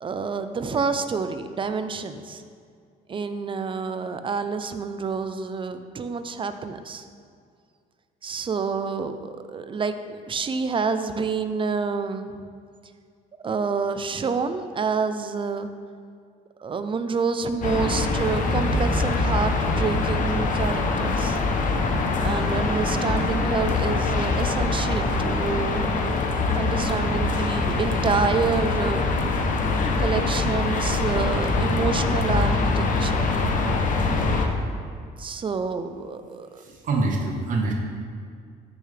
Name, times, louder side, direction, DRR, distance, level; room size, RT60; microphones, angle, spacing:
voice 1, 0.0-2.4 3.1-7.1 8.2-12.4 13.4-15.7 16.6-21.4 22.2-25.8 26.5-29.1 30.0-33.2 35.2-36.6, right 5 dB, 30° right, 9 dB, 0.6 m, -28 dB
sound 1, 17.6-34.5, left 3 dB, 50° left, 1.0 m, -23 dB
voice 2, 36.6-37.7, right 3 dB, 50° right, 1 dB, 1.2 m, -25 dB
13.5 x 6.7 x 3.4 m, 2.2 s
cardioid pair, 110°, 17 cm